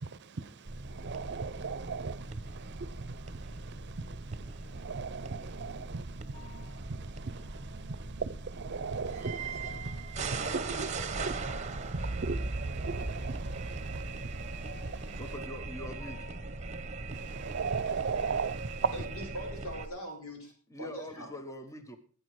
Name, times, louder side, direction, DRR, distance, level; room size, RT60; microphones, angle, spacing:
voice 1, 0.0-15.4 17.1-19.1, right 5 dB, 55° right, 0.7 m, -38 dB
sound 1, 0.7-19.9, right 3 dB, 30° right, 1.0 m, -39 dB
sound 2, 5.5-5.9 6.3-8.1 8.6-11.5 13.9-18.1, left 6 dB, 55° left, 3.1 m, -59 dB
voice 2, 15.2-16.3 20.7-22.0, left 1 dB, 15° left, 1.0 m, -43 dB
voice 3, 18.9-20.5 20.8-21.3, equal, 80° left, 5.5 m, -41 dB
15.5 x 9.0 x 4.8 m
head